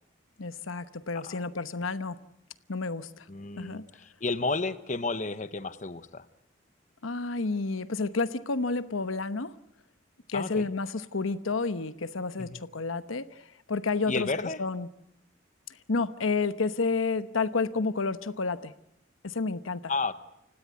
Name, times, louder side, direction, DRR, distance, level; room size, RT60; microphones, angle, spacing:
voice 1, 0.4-2.2 2.7-3.3 3.6-3.8 7.0-9.5 10.3-13.4 13.7-14.9 15.9-18.7 19.2-19.9, left 4 dB, 90° left, 13 dB, 1.0 m, -30 dB
voice 2, 3.3-6.2 10.3-10.7 12.4-12.6 14.1-14.6 19.9-20.1, left 3 dB, 40° left, 13 dB, 0.9 m, -32 dB
29.5 x 17.0 x 9.5 m, 0.81 s
head